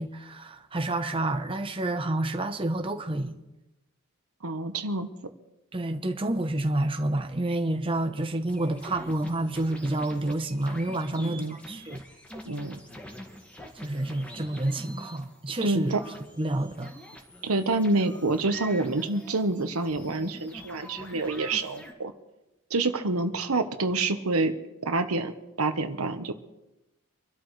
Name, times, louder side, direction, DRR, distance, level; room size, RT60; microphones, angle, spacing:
voice 1, 0.0-3.3 5.7-12.0 13.8-15.9 16.4-16.9, right 1 dB, 25° right, 0.9 m, -29 dB
voice 2, 4.4-5.1 11.1-11.6 12.5-12.8 15.6-16.0 17.4-22.1 22.7-24.5 24.8-25.3 25.6-26.4, right 2 dB, 90° right, 1.2 m, -27 dB
sound 1, 8.5-21.9, equal, 5° left, 1.8 m, -45 dB
26.0 x 12.5 x 3.3 m
head